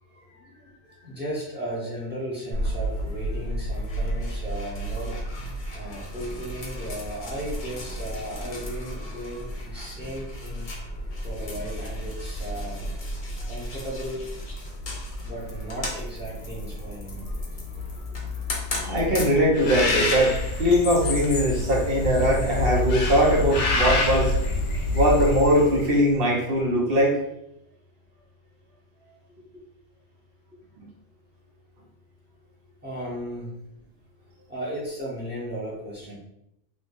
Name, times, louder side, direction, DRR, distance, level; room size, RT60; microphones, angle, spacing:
voice 1, 0.0-5.2 5.5-10.9 11.2-13.0 13.3-14.6 15.2-17.3 17.8-19.0 28.1-28.2 28.7-29.2 32.8-33.6 34.4-36.2, right 1 dB, 10° right, -6 dB, 0.9 m, -36 dB
sound 1, 2.5-20.8, equal, 45° left, 0.9 m, -33 dB
voice 2, 18.8-24.3 24.9-27.2 30.8-30.9, equal, 55° right, -3 dB, 1.1 m, -21 dB
Bird, 19.6-26.0, left 2 dB, 70° left, 1.0 m, -26 dB
3.3 x 3.1 x 2.6 m, 0.79 s
omnidirectional pair, 1.3 m